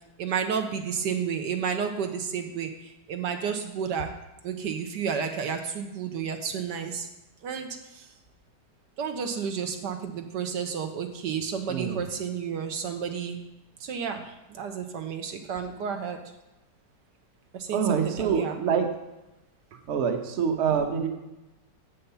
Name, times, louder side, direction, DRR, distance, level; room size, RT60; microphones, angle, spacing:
voice 1, 0.2-4.2 4.4-7.1 7.4-8.1 9.0-13.4 13.8-16.2 17.5-18.6 19.7-19.8, right 7 dB, 75° right, 5 dB, 1.3 m, -31 dB
voice 2, 17.7-18.9 19.9-21.1, right 7 dB, 45° right, 4 dB, 1.1 m, -25 dB
7.8 x 5.6 x 6.8 m, 0.96 s
omnidirectional pair, 1.9 m